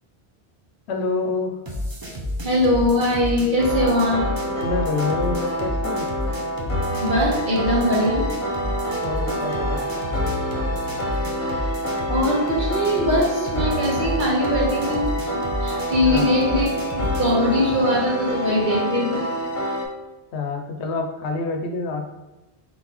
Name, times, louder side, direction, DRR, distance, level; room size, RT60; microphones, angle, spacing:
voice 1, 0.9-1.6 4.6-6.1 9.0-10.1 16.0-16.3 20.3-22.1, left 3 dB, 85° left, 4 dB, 0.9 m, -27 dB
sound 1, 1.7-17.4, left 1 dB, 30° right, 0.5 m, -30 dB
voice 2, 2.4-4.3 7.0-8.3 12.1-19.3, left 1 dB, 50° right, -4 dB, 1.2 m, -21 dB
sound 2, 3.6-19.9, equal, 50° left, 0.9 m, -27 dB
3.8 x 3.8 x 3.0 m, 1.1 s
omnidirectional pair, 1.1 m